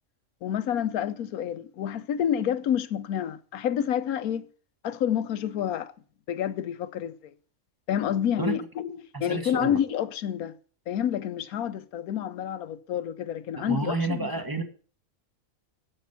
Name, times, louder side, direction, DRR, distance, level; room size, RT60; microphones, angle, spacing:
voice 1, 0.4-4.5 4.8-5.9 6.3-7.3 7.9-10.5 10.9-14.3, left 9 dB, 90° left, 1.2 m, -29 dB
voice 2, 9.1-9.8 13.6-14.6, right 2 dB, 15° right, 1.4 m, -29 dB
10.5 x 7.7 x 5.6 m
omnidirectional pair, 1.5 m